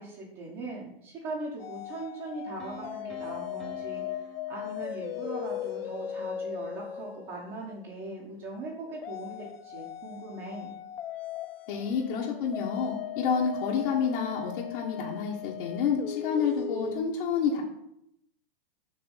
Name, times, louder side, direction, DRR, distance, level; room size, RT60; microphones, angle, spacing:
voice 1, 0.0-10.8, right 2 dB, 30° right, -4 dB, 1.3 m, -40 dB
sound 1, 1.6-7.8 9.0-17.0, left 10 dB, 75° left, 0.6 m, -38 dB
Piano, 2.6-5.5, right 1 dB, ahead, 0.7 m, -48 dB
voice 2, 11.7-17.6, left 6 dB, 60° left, -2 dB, 1.3 m, -29 dB
6.6 x 3.1 x 5.5 m, 0.77 s
hypercardioid pair, 135°, 30 cm